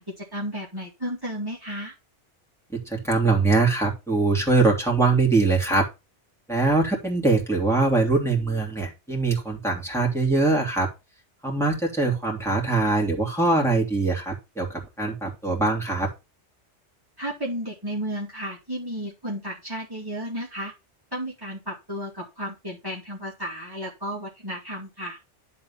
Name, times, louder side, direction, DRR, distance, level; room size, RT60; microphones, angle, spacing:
voice 1, 0.0-1.9 17.2-20.7 21.1-25.2, equal, 20° right, -4 dB, 2.4 m, -33 dB
voice 2, 2.9-5.9 6.5-10.9 11.4-16.1, right 3 dB, ahead, -2 dB, 3.0 m, -22 dB
11.0 x 4.2 x 5.6 m, 0.26 s
omnidirectional pair, 1.2 m